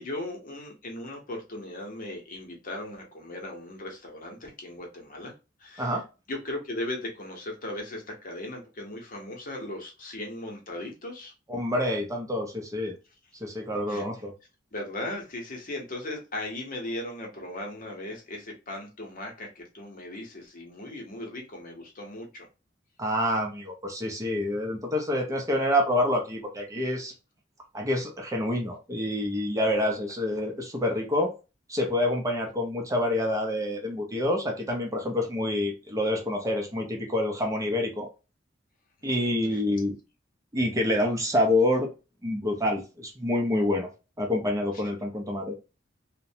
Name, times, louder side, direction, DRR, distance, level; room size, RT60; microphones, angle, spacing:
voice 1, 0.0-5.3 5.6-6.0 6.3-11.3 13.9-14.0 14.7-22.5 39.0-39.6, left 1 dB, 50° left, 0.8 m, -38 dB
voice 2, 11.5-12.9 13.4-14.3 23.0-27.1 27.7-31.3 31.7-38.1 39.0-40.0 40.5-41.9 42.2-43.9 44.2-45.5, left 1 dB, 20° right, 0.5 m, -27 dB
2.5 x 2.1 x 2.6 m
head